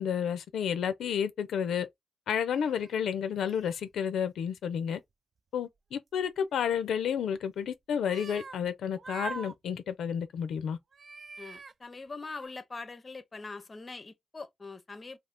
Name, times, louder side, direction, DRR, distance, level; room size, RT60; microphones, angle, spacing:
voice 1, 0.0-1.9 2.3-5.0 5.5-10.8, left 8 dB, 90° left, 0.4 m, -31 dB
sound 1, 2.5-2.9 3.4-3.9 6.2-6.7 8.0-8.7 8.9-9.8 10.9-11.7 12.2-12.5, right 4 dB, 45° right, 0.3 m, -44 dB
voice 2, 11.4-15.2, left 3 dB, 30° left, 0.5 m, -43 dB
2.5 x 2.4 x 3.4 m
cardioid pair, 90°, 0 cm